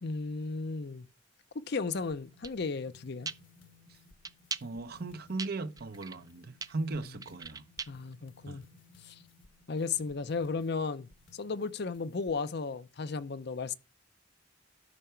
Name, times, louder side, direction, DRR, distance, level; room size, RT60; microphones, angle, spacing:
voice 1, 0.0-1.1 1.7-3.3 6.9-7.0 7.9-8.6 9.0-9.2 9.7-13.7, left 4 dB, 60° left, 0.6 m, -35 dB
sound 1, 1.9-12.6, left 3 dB, 80° left, 1.6 m, -60 dB
sound 2, 2.4-2.5 3.3-3.4 4.2-4.6 5.4-5.5 5.8-6.3 6.6-8.1, right 5 dB, 20° right, 0.4 m, -38 dB
voice 2, 4.6-7.6 8.5-8.6, right 3 dB, 55° right, 0.7 m, -38 dB
12.5 x 5.7 x 4.4 m
head